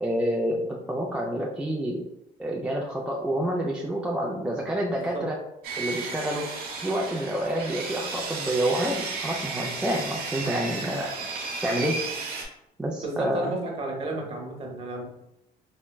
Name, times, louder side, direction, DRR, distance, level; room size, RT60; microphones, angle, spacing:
voice 1, 0.0-2.0 2.4-5.4 5.8-6.5 6.8-11.1 11.6-12.0 12.8-13.5, right 1 dB, 5° right, -2 dB, 0.4 m, -28 dB
voice 2, 4.9-5.2 13.0-15.1, right 2 dB, 35° right, 0 dB, 0.8 m, -32 dB
Sawing, 5.6-12.4, right 4 dB, 60° right, 0.9 m, -34 dB
4.3 x 2.1 x 2.2 m, 0.83 s
cardioid pair, 110°, 17 cm